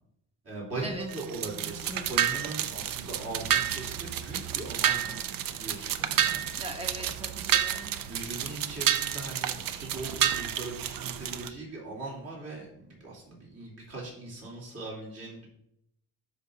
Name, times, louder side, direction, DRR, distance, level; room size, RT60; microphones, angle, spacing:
voice 1, 0.4-6.5 8.0-15.5, right 2 dB, 45° right, -4 dB, 3.4 m, -40 dB
sound 1, 1.1-11.5, right 10 dB, 80° right, 0.7 m, -30 dB
voice 2, 6.6-7.9, right 1 dB, 15° right, 5 dB, 1.0 m, -40 dB
12.0 x 5.3 x 2.7 m, 0.76 s
cardioid pair, 160°, 34 cm